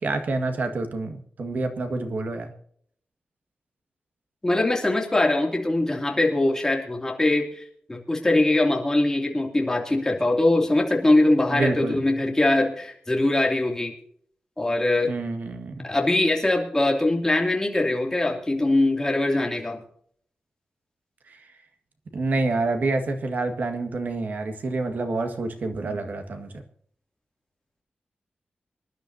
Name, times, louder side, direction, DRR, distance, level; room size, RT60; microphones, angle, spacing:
voice 1, 0.0-2.5 11.5-12.0 15.1-15.9 22.1-26.6, right 3 dB, 60° right, 6 dB, 1.9 m, -27 dB
voice 2, 4.4-7.6 7.9-13.9 14.6-15.1 15.8-19.8, left 2 dB, 15° left, 1 dB, 2.8 m, -22 dB
25.5 x 11.5 x 2.8 m, 0.62 s
wide cardioid pair, 155°, 3 cm